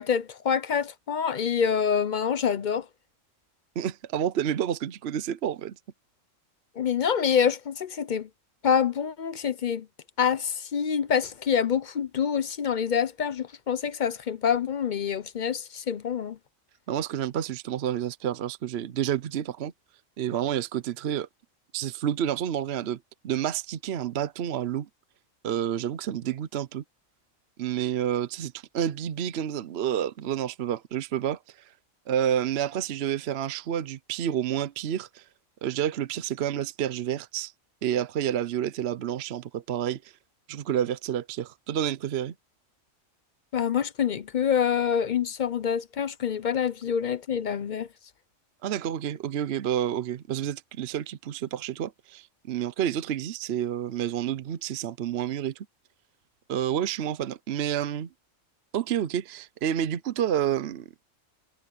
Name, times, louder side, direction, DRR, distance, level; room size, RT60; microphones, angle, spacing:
voice 1, 0.0-2.9 6.8-8.3 8.6-9.9 10.2-16.4 43.5-47.9, left 7 dB, 50° left, 0.6 m, -26 dB
voice 2, 3.8-5.7 16.9-19.7 20.2-21.3 21.7-24.9 25.4-26.8 27.6-31.7 32.1-35.2 35.6-37.5 37.8-40.1 40.5-42.3 48.6-55.7 56.5-58.1 58.7-60.9, right 10 dB, 60° right, 0.9 m, -29 dB
omnidirectional pair, 1.4 m